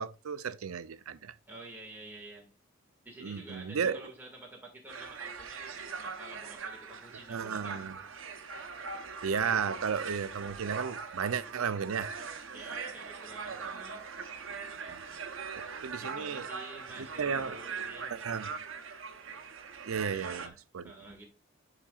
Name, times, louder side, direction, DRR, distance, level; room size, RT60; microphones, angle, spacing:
voice 1, 0.0-1.3 3.2-4.0 7.3-7.9 9.2-12.1 14.9-15.0 15.5-16.4 17.2-17.6 18.1-18.5 19.8-20.8, right 6 dB, 90° right, 0.5 m, -34 dB
voice 2, 1.5-2.5 3.1-8.1 12.5-14.1 16.0-18.1 20.1-20.6 20.8-21.2, right 2 dB, 10° right, 1.9 m, -49 dB
sound 1, 4.9-20.5, right 5 dB, 70° right, 0.9 m, -41 dB
10.0 x 5.8 x 2.4 m
head